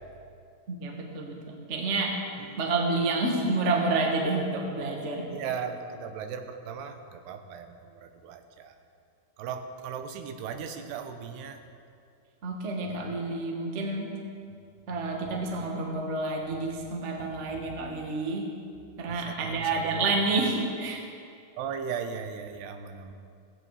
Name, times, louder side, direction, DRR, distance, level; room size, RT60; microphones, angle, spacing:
voice 1, 0.7-1.4 1.7-2.1 2.6-5.3 12.4-14.2 14.9-18.5 19.0-21.0, right 3 dB, 50° right, 0 dB, 0.8 m, -29 dB
voice 2, 5.3-8.8 9.4-11.6 15.3-15.4 19.1-20.1 21.6-23.1, right 7 dB, 85° right, 7 dB, 3.1 m, -37 dB
16.5 x 15.5 x 4.9 m, 2.4 s
omnidirectional pair, 4.6 m